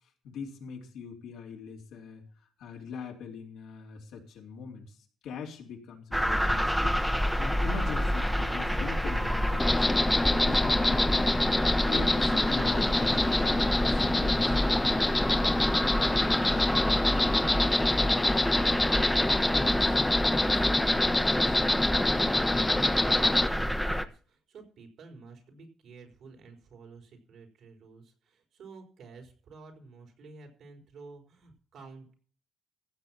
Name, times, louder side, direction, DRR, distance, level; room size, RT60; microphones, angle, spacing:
voice 1, 0.2-2.2 2.6-5.0 5.2-7.0 7.4-11.5 11.8-14.5, left 5 dB, 85° left, 0 dB, 3.5 m, -41 dB
sound 1, 6.1-24.1, equal, ahead, 1.1 m, -29 dB
Insect, 9.6-23.5, left 2 dB, 15° left, 0.6 m, -26 dB
voice 2, 16.7-32.1, right 4 dB, 70° right, 3 dB, 4.4 m, -51 dB
15.5 x 7.2 x 6.0 m, 0.42 s
cardioid pair, 90°, 0 cm